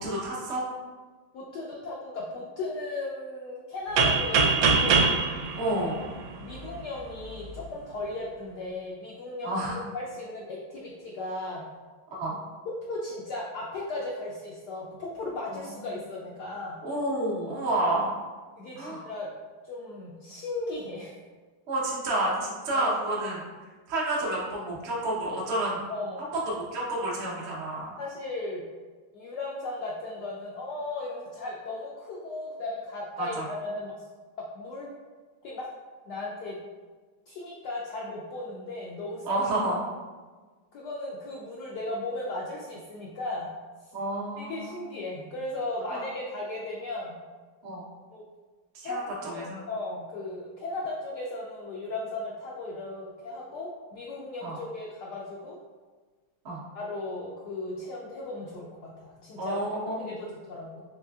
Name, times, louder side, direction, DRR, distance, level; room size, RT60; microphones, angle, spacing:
voice 1, 0.0-0.6 5.6-6.0 9.4-9.8 12.1-12.3 15.5-15.6 16.8-18.1 18.8-19.0 21.7-23.5 23.9-25.8 26.5-27.9 33.2-33.4 39.2-39.8 43.9-44.7 45.9-46.0 47.6-47.8 48.7-49.6 54.4-54.6 56.4-56.6 59.4-60.1, right 1 dB, 65° right, -6 dB, 0.6 m, -30 dB
voice 2, 1.3-5.1 6.4-11.6 12.9-16.8 18.6-19.3 19.6-21.2 22.7-22.9 25.9-26.2 28.0-28.6 29.1-33.9 34.5-34.9 35.4-35.7 36.1-36.6 37.3-39.4 40.7-43.5 44.4-47.2 48.1-48.2 48.8-49.1 49.3-55.6 56.7-59.6 60.0-60.8, left 2 dB, 90° left, -4 dB, 0.9 m, -36 dB
sound 1, 4.0-6.7, right 4 dB, 80° right, 1.4 m, -23 dB
4.3 x 3.3 x 2.3 m, 1.4 s
omnidirectional pair, 2.3 m